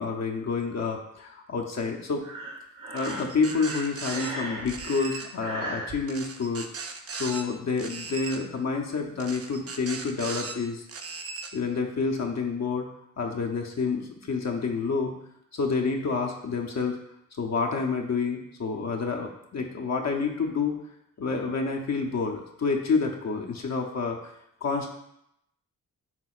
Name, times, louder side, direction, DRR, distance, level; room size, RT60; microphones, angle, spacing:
voice 1, 0.0-2.2 2.9-6.7 7.1-10.9 11.5-12.9 13.2-15.1 15.5-17.0 17.4-20.7 21.2-24.3 24.6-24.9, left 4 dB, 55° left, 1 dB, 0.7 m, -28 dB
Breathing, 2.2-6.0, right 2 dB, 75° right, 1.1 m, -37 dB
sound 1, 3.0-4.3 4.7-5.3 6.1-7.4 7.8-8.4 9.2-10.5 10.9-11.5, right 4 dB, 45° right, 0.6 m, -38 dB
6.0 x 3.6 x 2.4 m, 0.78 s
cardioid pair, 65°, 33 cm